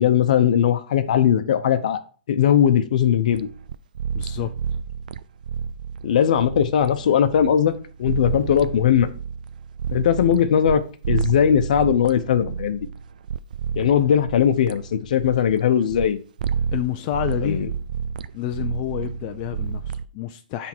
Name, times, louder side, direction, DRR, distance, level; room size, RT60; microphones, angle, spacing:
voice 1, 0.0-2.0 2.3-3.5 6.0-7.7 8.0-9.1 9.9-12.9 13.7-16.2 17.4-17.7, left 9 dB, 65° left, 10 dB, 0.9 m, -19 dB
sound 1, 3.3-10.8 11.0-16.1 16.4-16.8 17.1-20.0, right 7 dB, 70° right, 0.4 m, -30 dB
voice 2, 4.1-4.8 16.7-17.7 18.3-20.7, left 12 dB, 35° left, 6 dB, 0.5 m, -29 dB
9.5 x 3.6 x 4.5 m, 0.40 s
hypercardioid pair, 150°, 5 cm